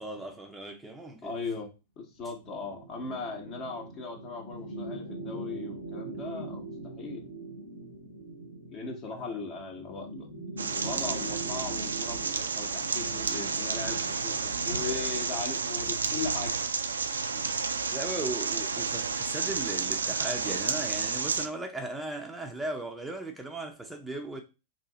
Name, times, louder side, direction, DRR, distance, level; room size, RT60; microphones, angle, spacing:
voice 1, 0.0-1.3 9.2-9.4 14.8-15.0 17.9-24.4, right 2 dB, 5° right, 0.5 m, -37 dB
voice 2, 1.2-1.7 2.0-7.2 8.7-10.3 10.5-16.6, left 4 dB, 35° left, 0.8 m, -38 dB
sound 1, 2.4-14.8, right 2 dB, 75° left, 1.2 m, -42 dB
sound 2, 10.6-21.5, right 5 dB, 70° right, 0.3 m, -31 dB
2.9 x 2.7 x 3.7 m
figure-of-eight pair, 95°, 0 cm